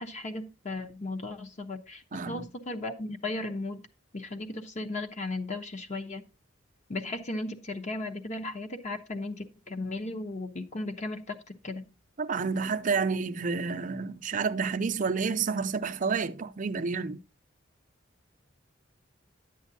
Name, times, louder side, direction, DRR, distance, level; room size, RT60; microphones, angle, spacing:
voice 1, 0.0-3.9 4.1-6.2 6.9-11.9, left 2 dB, 40° left, 0.9 m, -36 dB
voice 2, 2.1-2.5 12.2-17.2, right 5 dB, 45° right, 0.5 m, -29 dB
10.5 x 8.0 x 2.8 m
head